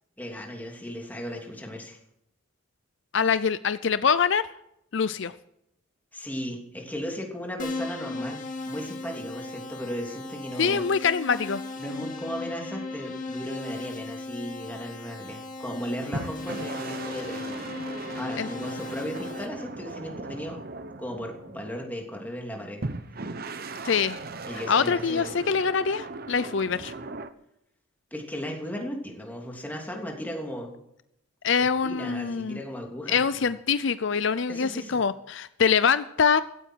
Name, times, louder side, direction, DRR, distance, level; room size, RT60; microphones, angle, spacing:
voice 1, 0.2-2.0 6.1-8.4 8.6-11.1 11.8-17.7 18.1-20.6 21.0-22.8 24.5-25.3 28.1-30.7 31.8-33.5 34.5-35.0, equal, 10° left, 1 dB, 3.0 m, -36 dB
voice 2, 3.1-4.5 4.9-5.3 10.6-11.6 18.4-18.5 23.8-24.2 24.7-26.9 31.4-32.6 33.1-36.4, left 6 dB, 60° left, 14 dB, 0.5 m, -24 dB
Keyboard (musical), 7.6-19.5, left 3 dB, 40° left, 2.5 m, -37 dB
sound 1, 16.1-22.0 22.8-27.3, right 3 dB, 45° right, 1.0 m, -38 dB
16.5 x 14.0 x 4.6 m, 0.80 s
head